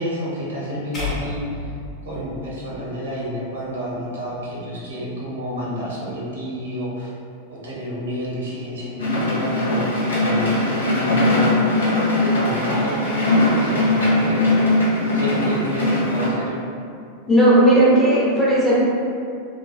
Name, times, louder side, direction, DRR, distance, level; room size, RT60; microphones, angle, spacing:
voice 1, 0.0-1.7 2.0-7.1 7.5-11.9 12.2-14.4 15.1-16.5, equal, 65° right, -7 dB, 0.8 m, -30 dB
sound 1, 0.9-3.2, left 3 dB, 30° left, 1.0 m, -32 dB
sound 2, 9.0-16.3, left 1 dB, 70° left, 0.6 m, -20 dB
voice 2, 17.3-18.7, right 1 dB, 5° left, -9 dB, 0.8 m, -15 dB
3.0 x 2.1 x 2.4 m, 2.5 s
figure-of-eight pair, 90°, 0 cm